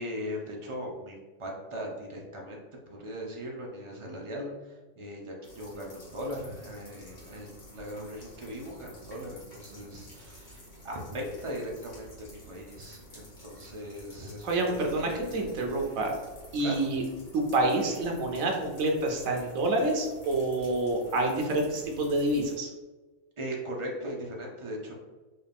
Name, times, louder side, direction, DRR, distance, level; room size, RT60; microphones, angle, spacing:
voice 1, 0.0-2.6 2.9-15.6 16.6-16.8 23.4-24.9, equal, 40° right, -2 dB, 0.4 m, -39 dB
sound 1, 5.4-22.6, equal, 45° left, 1.4 m, -50 dB
voice 2, 14.4-16.1 16.5-17.0 17.3-22.7, right 2 dB, 85° right, 1 dB, 1.2 m, -28 dB
4.0 x 2.4 x 3.4 m, 1.3 s
omnidirectional pair, 1.4 m